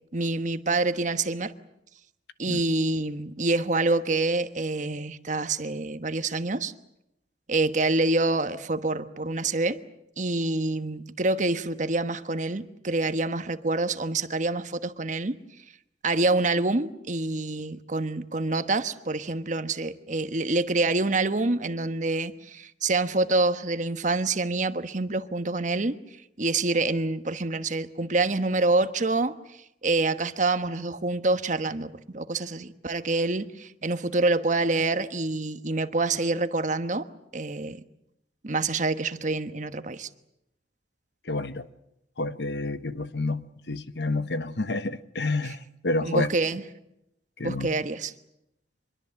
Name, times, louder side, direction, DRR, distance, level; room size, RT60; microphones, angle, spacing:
voice 1, 0.1-1.5 2.4-6.7 7.5-9.8 10.2-15.4 16.0-25.9 26.4-29.3 29.8-37.1 37.3-37.8 38.4-40.1 45.4-45.5 46.0-46.6 47.4-48.1, right 2 dB, 45° right, 1.2 m, -26 dB
voice 2, 41.3-41.7 42.2-45.6 45.8-46.3 47.4-47.7, left 2 dB, 75° left, 1.2 m, -29 dB
25.5 x 22.5 x 7.7 m
head